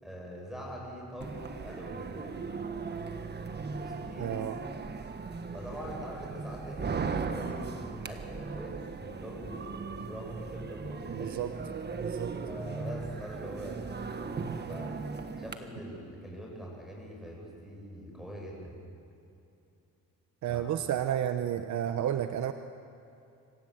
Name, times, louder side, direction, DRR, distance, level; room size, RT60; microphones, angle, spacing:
voice 1, 0.0-2.4 3.7-4.4 5.5-11.4 12.5-14.3 14.7-15.0 15.4-18.8 20.5-20.7, equal, ahead, -1 dB, 7.6 m, -43 dB
sound 1, 1.2-15.6, right 4 dB, 35° right, 1.5 m, -38 dB
voice 2, 4.2-4.6 11.1-11.5 12.0-12.4 20.4-22.5, right 10 dB, 65° right, 8 dB, 1.0 m, -31 dB
26.0 x 15.5 x 8.0 m, 2.7 s
cardioid pair, 90°, 30 cm